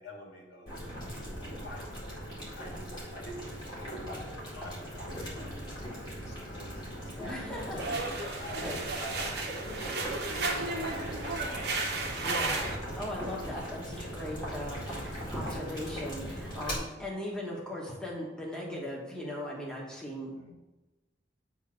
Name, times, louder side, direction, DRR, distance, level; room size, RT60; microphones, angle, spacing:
voice 1, 0.0-8.0 8.4-12.1 20.4-20.6, equal, 65° left, -2 dB, 1.9 m, -48 dB
Boiling, 0.7-16.7, equal, 25° left, 2.0 m, -40 dB
voice 2, 7.2-8.8 12.2-20.3, left 1 dB, 5° left, -4 dB, 1.2 m, -39 dB
sound 1, 7.8-12.8, right 3 dB, 60° right, 1.0 m, -33 dB
8.1 x 2.8 x 5.9 m, 1.1 s
head